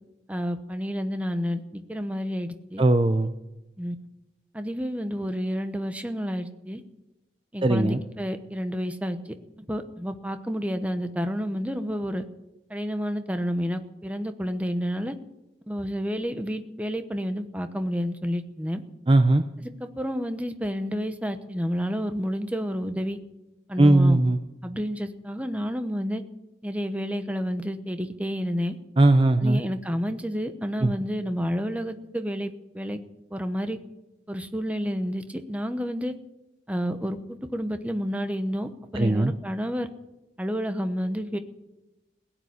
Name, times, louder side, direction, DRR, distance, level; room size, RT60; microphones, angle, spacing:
voice 1, 0.3-2.8 3.8-4.0 4.5-6.8 7.5-9.2 9.7-12.2 12.7-15.1 15.7-18.8 19.6-23.2 23.7-24.2 24.6-26.2 26.6-28.7 29.4-33.0 33.3-33.8 34.3-36.1 36.7-39.9 40.4-41.4, equal, 5° right, 8 dB, 0.9 m, -30 dB
voice 2, 2.8-3.3 7.6-8.0 19.1-19.4 23.8-24.4 29.0-29.6 30.8-30.9 38.9-39.3, right 2 dB, 30° right, 9 dB, 0.6 m, -19 dB
16.5 x 9.0 x 9.6 m, 0.99 s
head